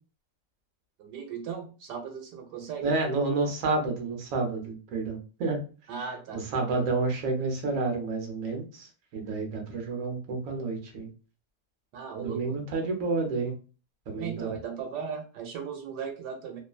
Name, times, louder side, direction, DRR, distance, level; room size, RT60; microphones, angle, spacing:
voice 1, 1.0-2.9 5.9-6.4 11.9-12.6 14.2-16.6, right 6 dB, 85° right, 3 dB, 1.2 m, -37 dB
voice 2, 2.8-5.6 6.0-6.1 6.3-11.1 12.2-13.5 14.1-14.5, right 3 dB, 60° right, 1 dB, 1.1 m, -30 dB
3.0 x 2.1 x 2.3 m, 0.35 s
omnidirectional pair, 1.8 m